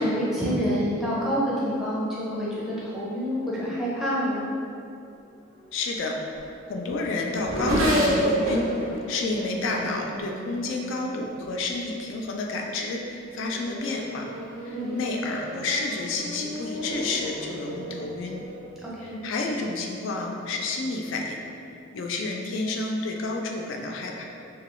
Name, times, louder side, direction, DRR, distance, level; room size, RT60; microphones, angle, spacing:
voice 1, 0.0-4.4 14.7-14.9 18.8-19.2, equal, ahead, -8 dB, 0.5 m, -27 dB
voice 2, 5.7-6.2 6.7-8.7 9.1-14.2 14.6-18.4 19.0-21.4 21.9-24.3, left 3 dB, 65° left, 1 dB, 0.3 m, -30 dB
Race car auto racing / Accelerating revving vroom, 5.8-11.7 12.5-12.9 13.3-19.2, equal, 85° right, 0.6 m, -31 dB
2.9 x 2.2 x 3.0 m, 2.6 s
head